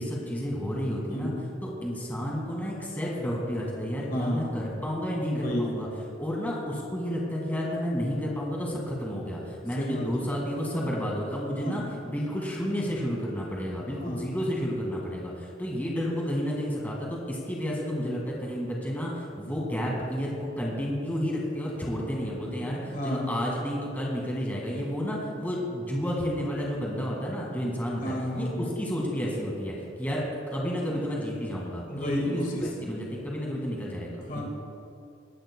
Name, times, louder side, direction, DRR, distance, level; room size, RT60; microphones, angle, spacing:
voice 1, 0.0-1.3 1.6-5.9 6.2-28.5 28.8-30.2 30.5-32.4 32.9-34.5, equal, 10° left, -3 dB, 1.9 m, -31 dB
voice 2, 4.1-4.5 5.3-5.7 9.8-10.3 11.6-11.9 14.0-14.3 22.6-23.4 28.0-28.7 31.9-32.7 34.1-34.5, equal, 45° left, 0 dB, 1.9 m, -32 dB
22.5 x 12.0 x 2.3 m, 2.6 s
head